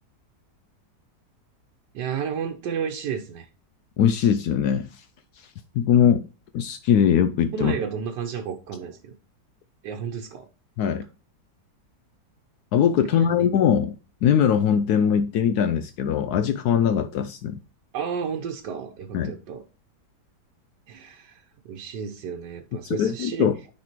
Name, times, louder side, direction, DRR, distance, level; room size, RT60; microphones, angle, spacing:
voice 1, 1.9-3.5 7.5-9.1 9.8-10.5 13.0-13.5 17.9-19.6 20.9-23.5, right 7 dB, 85° right, 1.4 m, -32 dB
voice 2, 4.0-4.9 5.7-6.2 6.5-7.7 10.8-11.0 12.7-14.0 14.2-17.6 19.1-19.3 22.8-23.5, left 8 dB, 75° left, 1.0 m, -21 dB
9.5 x 4.1 x 2.9 m
omnidirectional pair, 1.8 m